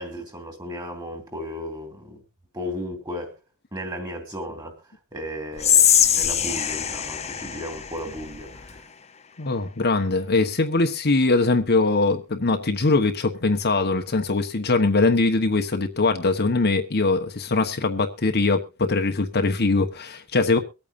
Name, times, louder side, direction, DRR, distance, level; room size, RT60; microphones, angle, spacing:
voice 1, 0.0-2.2 2.5-3.3 3.7-4.8 5.1-8.8, equal, 20° right, 3.1 m, -35 dB
Whispering, 5.6-8.8, left 9 dB, 30° left, 0.8 m, -22 dB
voice 2, 9.4-20.6, left 3 dB, 50° left, 1.2 m, -22 dB
23.5 x 8.8 x 2.6 m
head